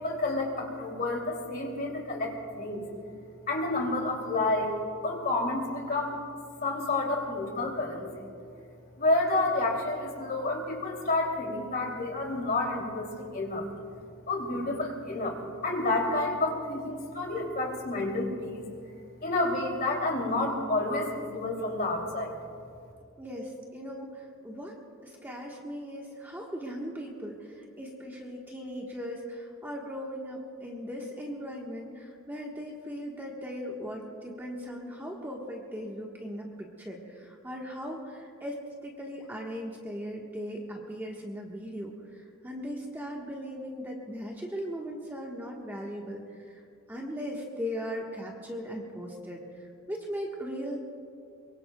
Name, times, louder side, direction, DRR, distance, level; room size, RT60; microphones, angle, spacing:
voice 1, 0.0-2.8 3.5-4.7 5.0-6.2 6.6-8.3 9.0-13.7 14.3-15.4 15.6-18.7 19.2-22.3, left 2 dB, 45° left, 0 dB, 2.8 m, -29 dB
voice 2, 23.2-24.8 25.0-38.6 38.8-46.6 46.9-50.8, equal, 10° right, -2 dB, 1.3 m, -38 dB
23.5 x 23.0 x 2.3 m, 2.4 s
head